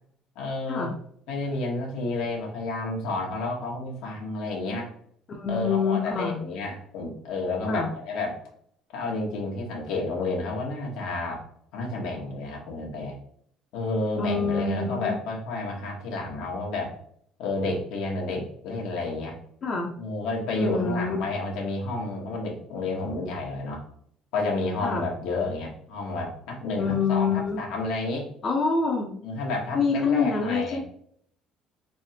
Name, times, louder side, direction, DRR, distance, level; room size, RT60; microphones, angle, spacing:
voice 1, 0.3-0.9 1.3-4.9 5.5-8.4 8.9-11.4 11.7-13.1 13.7-16.9 17.4-19.4 20.0-23.8 24.3-28.3 29.2-30.8, left 2 dB, 80° left, -1 dB, 1.1 m, -30 dB
voice 2, 5.3-6.4 7.7-7.9 14.2-15.2 19.6-19.9 20.6-21.2 24.8-25.0 26.8-27.6 28.4-29.1 29.7-30.8, left 5 dB, 40° left, 0 dB, 0.6 m, -26 dB
3.4 x 3.2 x 2.7 m, 0.66 s
cardioid pair, 125°, 0 cm